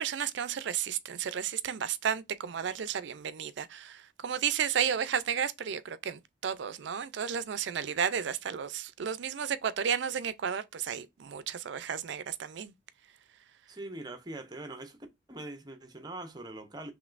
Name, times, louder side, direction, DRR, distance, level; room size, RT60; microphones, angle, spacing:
voice 1, 0.0-12.7, right 8 dB, 65° right, 0.4 m, -33 dB
voice 2, 13.7-15.0 15.3-16.9, right 2 dB, 20° right, 0.6 m, -42 dB
5.1 x 3.1 x 2.4 m
head